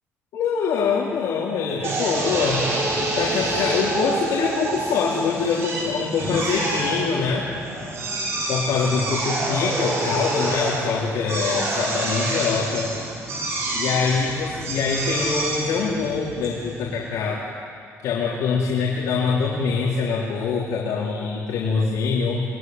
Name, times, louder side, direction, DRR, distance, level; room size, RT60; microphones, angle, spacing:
voice 1, 0.3-2.6 3.0-7.5 8.5-12.9 13.5-17.5 18.0-22.4, left 5 dB, 90° left, -5 dB, 3.8 m, -24 dB
Drill, 1.8-17.1, right 2 dB, 55° right, 7.4 m, -27 dB
27.5 x 22.0 x 9.6 m, 2.4 s
cardioid pair, 145°, 5 cm